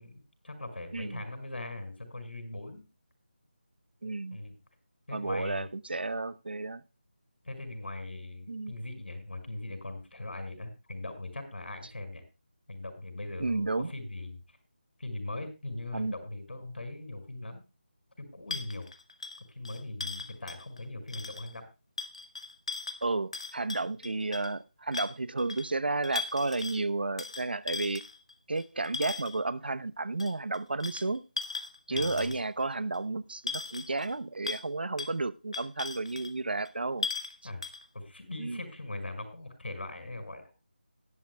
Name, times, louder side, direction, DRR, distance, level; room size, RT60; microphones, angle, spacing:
voice 1, 0.0-2.8 4.3-4.6 5.1-5.7 7.4-12.2 12.7-14.6 15.0-17.6 18.2-18.9 19.5-21.7 31.9-32.3 37.4-37.6 37.9-40.5, left 2 dB, 75° left, 5.5 m, -40 dB
voice 2, 0.9-1.2 4.0-4.4 5.1-6.8 8.5-8.7 13.4-13.9 15.9-16.1 23.0-28.0 28.5-31.2 31.9-37.1 38.4-38.6, right 3 dB, 65° right, 0.9 m, -32 dB
sound 1, 18.5-20.8 21.1-21.5 22.0-24.5 24.9-25.7 26.0-26.8 27.2-29.4 30.2-32.6 32.9-33.0 33.5-34.1 34.4-34.7 35.0-35.1 35.5-36.3 36.6-36.7 37.0-37.3 37.6-37.8, left 4 dB, 35° left, 1.1 m, -38 dB
18.0 x 12.0 x 2.3 m
figure-of-eight pair, 175°, 6 cm